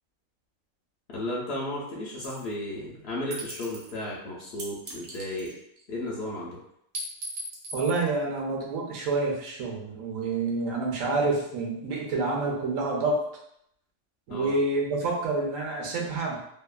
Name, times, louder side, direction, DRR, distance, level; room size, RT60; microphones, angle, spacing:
voice 1, 1.1-5.5 5.9-6.6 14.3-14.5, left 1 dB, 60° left, -5 dB, 0.8 m, -34 dB
sound 1, 2.2-2.5 3.3-3.9 4.6-5.8 6.9-8.0, right 1 dB, 45° right, 0.7 m, -38 dB
voice 2, 7.7-13.2 14.3-16.4, right 3 dB, 75° right, -2 dB, 1.1 m, -28 dB
2.8 x 2.3 x 2.3 m, 0.74 s
omnidirectional pair, 1.4 m